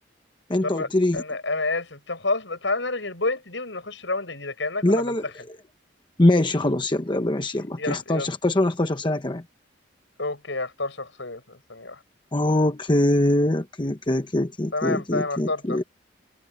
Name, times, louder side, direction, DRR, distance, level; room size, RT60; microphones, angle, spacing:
voice 1, 0.5-1.2 4.8-5.6 6.2-9.4 12.3-15.8, left 1 dB, 25° left, 0.9 m, -23 dB
voice 2, 1.1-5.1 7.6-8.3 10.2-12.0 14.7-15.9, left 3 dB, 75° left, 7.2 m, -29 dB
head